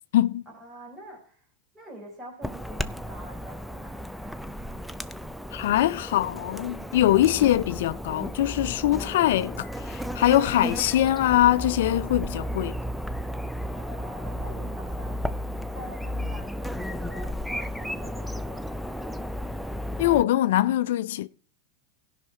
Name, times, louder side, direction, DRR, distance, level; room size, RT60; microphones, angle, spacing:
voice 1, 0.5-1.5 1.7-4.1 13.7-15.2 15.7-18.9, right 1 dB, 15° right, 3.6 m, -45 dB
Chirp tweet / Buzz, 2.4-20.2, equal, ahead, 0.5 m, -34 dB
voice 2, 5.5-12.8 20.0-21.3, left 13 dB, 75° left, 0.4 m, -23 dB
16.5 x 5.7 x 4.5 m
hypercardioid pair, 100°, 0 cm